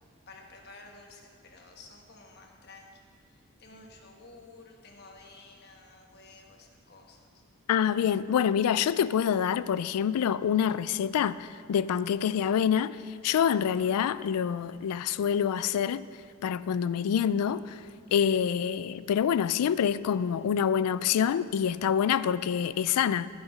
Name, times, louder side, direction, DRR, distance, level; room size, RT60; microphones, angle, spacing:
voice 1, 0.3-2.9 3.6-7.4, left 3 dB, 45° left, 1.2 m, -52 dB
voice 2, 7.7-16.0 16.4-17.8 18.1-23.3, left 8 dB, 90° left, 0.3 m, -26 dB
14.5 x 5.0 x 5.4 m
head